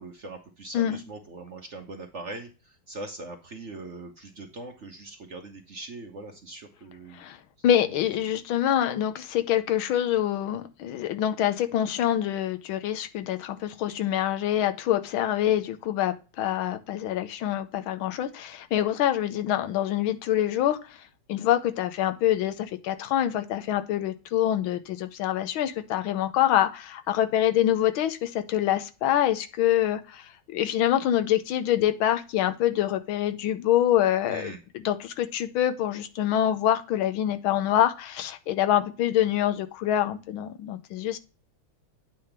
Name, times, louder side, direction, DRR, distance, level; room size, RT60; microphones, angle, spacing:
voice 1, 0.0-7.3 34.3-34.6, right 2 dB, 50° right, 0.9 m, -41 dB
voice 2, 7.6-20.8 21.3-30.2 30.5-34.5 34.8-41.2, left 11 dB, 85° left, 1.6 m, -25 dB
8.7 x 3.5 x 5.8 m
omnidirectional pair, 2.2 m